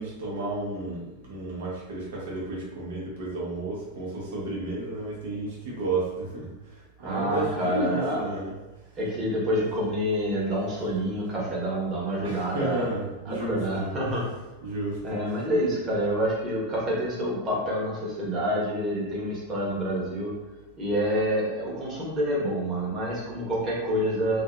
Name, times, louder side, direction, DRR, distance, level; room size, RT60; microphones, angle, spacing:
voice 1, 0.0-6.5 7.0-8.5 12.2-13.8 14.6-15.2, right 2 dB, 55° right, -4 dB, 0.8 m, -32 dB
voice 2, 7.0-8.2 9.0-12.9 13.3-14.2 15.0-20.3 20.8-24.4, equal, 25° right, -6 dB, 1.1 m, -27 dB
2.6 x 2.4 x 2.2 m, 1.0 s
figure-of-eight pair, 90°, 0 cm